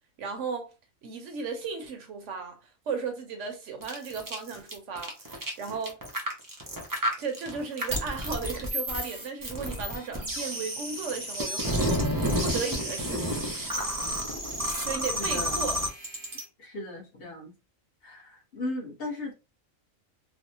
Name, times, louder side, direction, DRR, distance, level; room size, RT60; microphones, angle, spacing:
voice 1, 0.2-0.7 1.0-2.6 2.9-6.0 7.2-12.0 12.4-13.5 14.6-15.8, right 5 dB, 70° right, 1.0 m, -35 dB
sound 1, 3.8-16.4, equal, 30° right, 0.3 m, -31 dB
voice 2, 15.2-15.6 16.6-17.5 18.0-19.3, left 2 dB, 50° left, 1.0 m, -36 dB
3.3 x 2.0 x 2.6 m
omnidirectional pair, 1.4 m